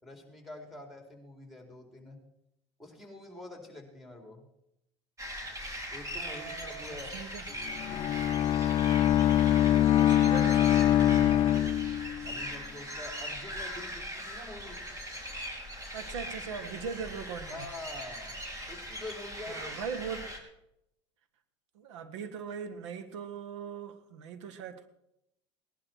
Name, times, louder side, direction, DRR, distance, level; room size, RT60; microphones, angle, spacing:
voice 1, 0.0-2.2 2.8-4.4 5.9-7.1 12.2-14.8 17.5-18.3 18.7-19.9, left 2 dB, ahead, 4.3 m, -46 dB
sound 1, 5.2-20.4, equal, 20° right, 3.4 m, -40 dB
voice 2, 6.2-7.4 9.9-11.5 15.9-17.7 19.5-20.3 21.7-24.9, right 6 dB, 80° right, 1.6 m, -40 dB
Bowed string instrument, 7.7-12.4, left 11 dB, 35° left, 0.6 m, -24 dB
18.5 x 11.5 x 4.7 m
hypercardioid pair, 90°, 15 cm